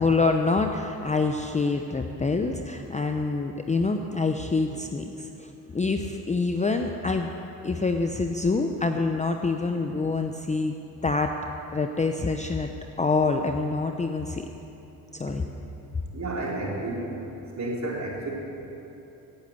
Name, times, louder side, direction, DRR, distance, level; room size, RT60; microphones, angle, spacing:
voice 1, 0.0-7.3 7.6-10.7 11.0-11.3 11.7-12.7 13.0-14.5 15.1-15.5, left 3 dB, 15° left, 5 dB, 0.7 m, -26 dB
voice 2, 16.1-17.1 17.5-18.3, right 2 dB, 40° right, -3 dB, 3.9 m, -31 dB
17.5 x 8.5 x 6.8 m, 3.0 s
supercardioid pair, 85°, 44 cm